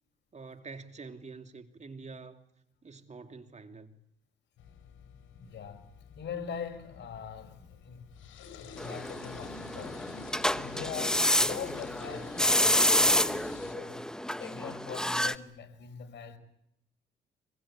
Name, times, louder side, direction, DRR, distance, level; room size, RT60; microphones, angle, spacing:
voice 1, 0.3-2.4 2.8-3.9, right 4 dB, 35° right, 2.8 m, -46 dB
sound 1, 4.6-13.8, left 6 dB, 80° left, 4.9 m, -48 dB
voice 2, 5.4-5.9 6.2-8.1 8.5-10.0 10.5-14.1 14.4-16.4, left 7 dB, 65° left, 5.4 m, -42 dB
sound 2, 8.8-15.4, left 1 dB, 5° left, 1.0 m, -28 dB
25.5 x 22.5 x 8.8 m
cardioid pair, 90°, 20 cm